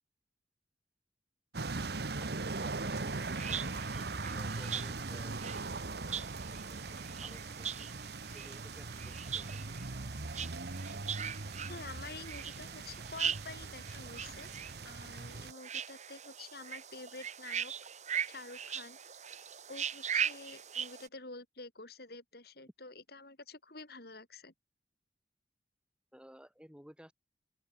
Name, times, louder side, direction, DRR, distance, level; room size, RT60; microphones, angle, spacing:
sound 1, 1.5-15.5, right 3 dB, 65° right, 1.2 m, -40 dB
voice 1, 2.2-4.1 4.3-5.4 6.1-6.2 6.6-6.8 7.2-7.9 8.3-9.5 26.1-27.1, equal, 5° right, 3.8 m, -55 dB
sound 2, 2.9-21.1, right 8 dB, 40° right, 4.3 m, -41 dB
voice 2, 11.7-14.5 14.8-17.7 18.3-19.0 19.7-24.5, left 3 dB, 60° left, 4.9 m, -49 dB
open air
head